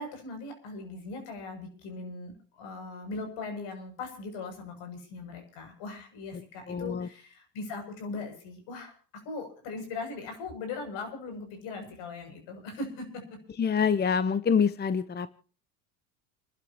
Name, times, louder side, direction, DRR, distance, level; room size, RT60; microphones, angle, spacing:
voice 1, 0.0-8.9 9.2-13.2, left 3 dB, 65° left, 5 dB, 7.3 m, -39 dB
voice 2, 6.7-7.1 13.6-15.3, left 6 dB, 20° left, 15 dB, 0.9 m, -26 dB
29.5 x 12.0 x 3.0 m, 0.41 s
hypercardioid pair, 85°, 46 cm